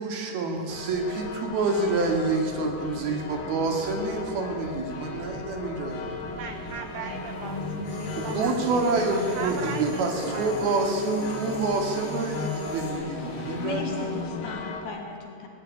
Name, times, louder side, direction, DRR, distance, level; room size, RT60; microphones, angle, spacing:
voice 1, 0.0-6.2 8.2-14.2, right 3 dB, 70° right, 3 dB, 4.2 m, -27 dB
sound 1, 0.7-14.8, left 4 dB, 60° left, 3.5 m, -39 dB
sound 2, 2.0-14.6, left 2 dB, 30° left, 2.9 m, -38 dB
voice 2, 6.2-10.9, right 7 dB, 85° right, 8 dB, 1.7 m, -39 dB
sound 3, 7.8-12.9, left 1 dB, 20° right, 7.6 m, -49 dB
voice 3, 13.2-15.5, left 4 dB, 85° left, 1 dB, 5.0 m, -37 dB
19.0 x 17.0 x 9.7 m, 2.9 s
omnidirectional pair, 4.7 m